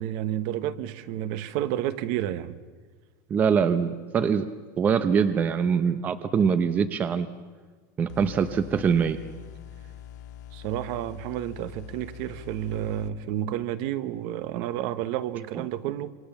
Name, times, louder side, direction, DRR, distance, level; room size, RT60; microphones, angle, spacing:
voice 1, 0.0-2.6 10.5-16.1, right 12 dB, 45° right, 1.1 m, -30 dB
voice 2, 3.3-4.5 4.8-7.3 8.0-9.2, right 6 dB, 15° right, 0.7 m, -23 dB
sound 1, 8.1-13.1, left 10 dB, 75° left, 1.9 m, -44 dB
27.0 x 25.0 x 7.1 m
supercardioid pair, 180°, 9 cm